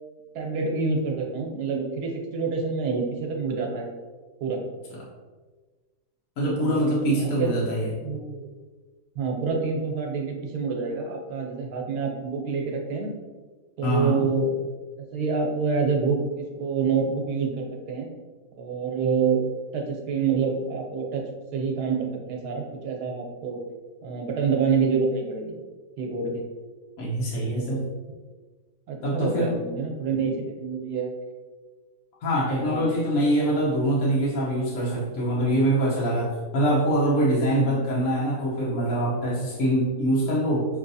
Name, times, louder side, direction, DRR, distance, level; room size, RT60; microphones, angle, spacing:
voice 1, 0.3-3.9 4.4-4.6 6.7-8.5 9.2-13.1 13.8-14.5 15.1-18.1 18.6-19.4 19.7-21.2 21.5-23.6 24.0-25.6 26.0-26.4 27.3-27.8 28.9-31.1 32.6-32.9 37.6-37.8, right 5 dB, 90° right, 1 dB, 1.3 m, -27 dB
voice 2, 6.4-7.9 13.8-14.3 27.0-27.8 29.0-29.5 32.2-40.7, right 1 dB, 65° left, -6 dB, 1.3 m, -24 dB
5.6 x 3.2 x 2.6 m, 1.4 s
omnidirectional pair, 1.7 m